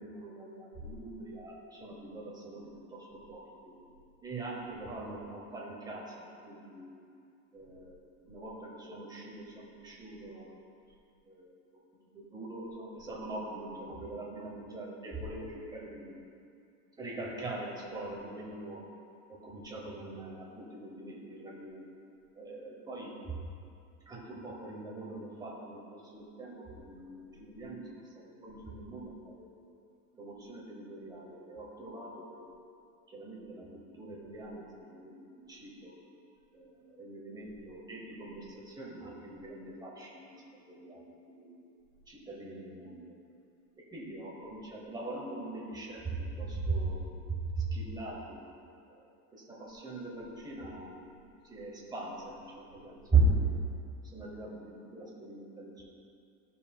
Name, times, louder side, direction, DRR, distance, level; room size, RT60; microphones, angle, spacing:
voice 1, 0.0-3.8 4.2-7.0 7.5-10.5 11.2-11.5 12.1-16.1 17.0-18.9 19.3-21.9 22.3-23.3 24.1-29.6 30.1-32.4 33.1-36.0 36.5-40.4 40.7-41.6 42.1-43.2 43.8-47.2 47.5-48.5 48.9-53.5 54.0-55.8, right 3 dB, 10° right, -3 dB, 0.9 m, -39 dB
13.5 x 5.5 x 2.3 m, 2.5 s
supercardioid pair, 165°, 46 cm